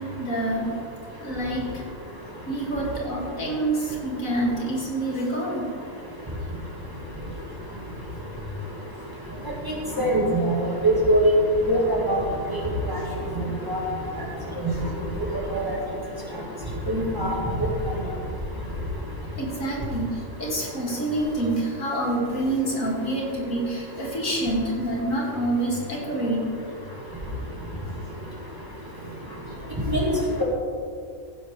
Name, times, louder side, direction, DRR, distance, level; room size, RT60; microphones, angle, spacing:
voice 1, 0.2-0.7 1.2-1.8 2.5-5.7 7.1-7.2 8.4-8.6 14.7-14.8 19.3-27.4 29.0-30.0 30.3-30.4, right 1 dB, 70° left, -4 dB, 2.9 m, -28 dB
voice 2, 10.0-11.3 11.7-12.2 12.9-13.0 13.7-13.8 15.5-15.6 16.9-17.3 29.9-30.1, right 1 dB, 15° right, -4 dB, 2.0 m, -22 dB
15.0 x 11.0 x 3.4 m, 2.3 s
omnidirectional pair, 1.4 m